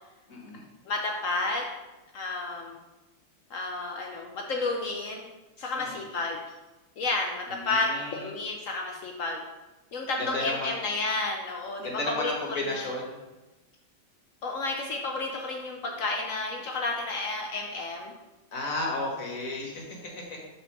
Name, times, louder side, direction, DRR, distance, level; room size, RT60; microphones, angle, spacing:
voice 1, 0.3-0.6 5.7-6.0 7.5-8.3 10.2-10.7 11.8-13.2 18.5-20.4, left 2 dB, 50° left, -1 dB, 1.6 m, -33 dB
voice 2, 0.9-1.6 2.1-2.8 3.5-5.3 5.6-6.6 7.0-9.4 9.9-12.9 14.4-18.1, left 3 dB, 70° left, 1 dB, 0.8 m, -31 dB
5.4 x 3.9 x 5.9 m, 1.1 s
omnidirectional pair, 2.1 m